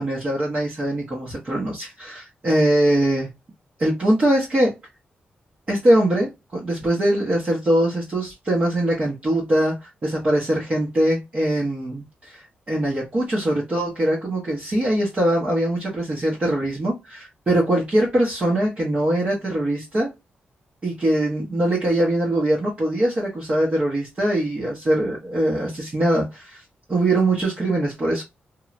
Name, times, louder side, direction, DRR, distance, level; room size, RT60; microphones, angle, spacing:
voice 1, 0.0-3.3 3.8-4.7 5.7-20.1 20.8-26.6 26.9-28.2, right 1 dB, 35° right, 0.9 m, -22 dB
3.1 x 2.3 x 2.4 m
wide cardioid pair, 110°, 4 cm